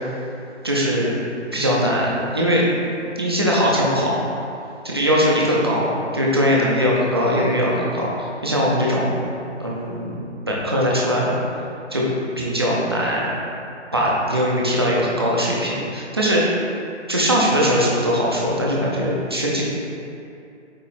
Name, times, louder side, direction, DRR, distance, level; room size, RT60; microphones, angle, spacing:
voice 1, 0.6-1.1 1.5-2.7 3.2-4.3 4.8-9.2 9.6-11.4 11.9-12.0 12.4-13.3 13.9-16.6 17.1-19.6, equal, 20° right, -5 dB, 0.6 m, -20 dB
8.2 x 3.0 x 4.2 m, 2.6 s
hypercardioid pair, 170°, 35 cm